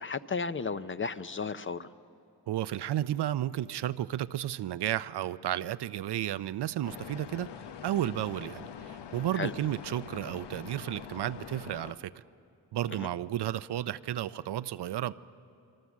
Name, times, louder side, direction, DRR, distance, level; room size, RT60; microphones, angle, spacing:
voice 1, 0.0-1.9 9.3-9.5 12.9-13.1, left 5 dB, 30° left, 12 dB, 0.6 m, -34 dB
voice 2, 2.5-7.5 7.8-12.2 12.7-15.1, right 12 dB, 75° right, 15 dB, 0.6 m, -32 dB
sound 1, 6.8-11.9, left 8 dB, 85° left, 1.0 m, -44 dB
25.5 x 24.0 x 7.3 m, 2.6 s
cardioid pair, 95°, 40 cm